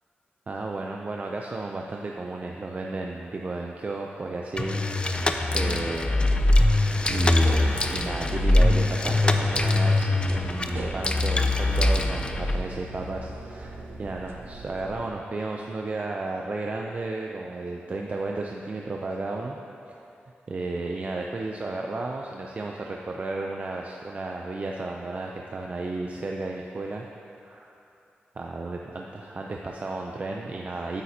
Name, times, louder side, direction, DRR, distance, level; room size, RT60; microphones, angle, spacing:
voice 1, 0.5-5.2 5.5-6.4 6.7-19.6 19.9-20.0 20.5-27.0 27.4-27.7 28.3-31.0, right 2 dB, 40° right, 0 dB, 0.4 m, -33 dB
sound 1, 4.6-12.6, left 2 dB, 25° left, 0.4 m, -22 dB
sound 2, 6.9-15.1, right 3 dB, 85° right, 0.6 m, -39 dB
8.9 x 8.4 x 2.8 m, 2.7 s
wide cardioid pair, 110°, 4 cm